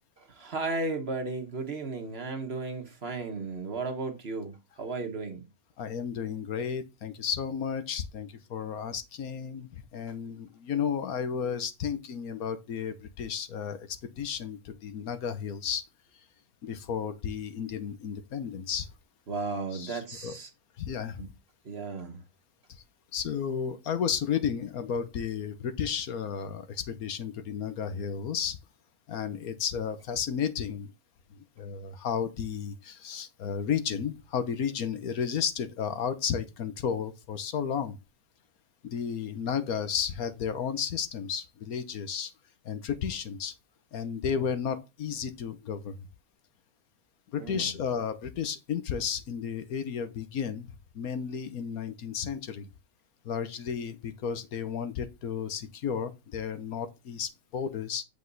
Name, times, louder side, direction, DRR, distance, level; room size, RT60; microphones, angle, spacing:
voice 1, 0.2-5.4 19.3-20.5 21.2-21.3 21.6-22.2 47.4-47.8, right 3 dB, 45° right, 1.4 m, -35 dB
voice 2, 5.8-15.8 16.6-18.9 19.7-20.4 20.8-21.3 23.1-28.6 29.1-30.9 31.4-38.0 38.8-42.3 42.6-43.5 43.9-46.0 47.3-52.7 53.2-58.0, left 7 dB, 75° left, 1.4 m, -33 dB
8.0 x 5.4 x 4.0 m
omnidirectional pair, 1.6 m